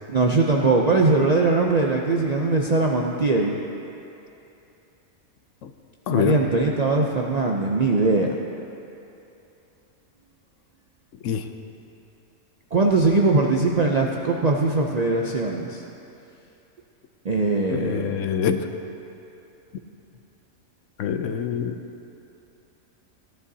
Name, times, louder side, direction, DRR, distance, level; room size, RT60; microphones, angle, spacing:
voice 1, 0.1-3.6 6.1-8.4 12.7-15.8 17.2-18.2, right 3 dB, 55° right, 0 dB, 0.4 m, -21 dB
voice 2, 6.1-6.4 11.2-11.5 17.7-18.7 21.0-21.8, left 8 dB, 70° left, 8 dB, 0.9 m, -25 dB
16.0 x 11.0 x 2.7 m, 2.8 s
omnidirectional pair, 1.4 m